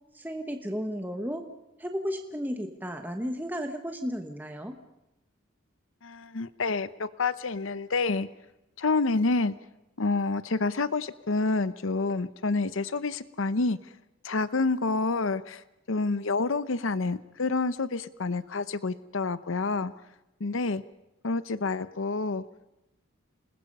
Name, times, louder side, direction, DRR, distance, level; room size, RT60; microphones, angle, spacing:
voice 1, 0.1-1.5 1.8-4.7, equal, 10° right, 5 dB, 1.2 m, -33 dB
voice 2, 6.0-8.3 8.8-9.5 10.0-13.8 14.2-19.9 20.4-20.8 21.2-22.4, left 3 dB, 75° left, 15 dB, 0.8 m, -28 dB
28.0 x 20.0 x 5.4 m, 0.93 s
head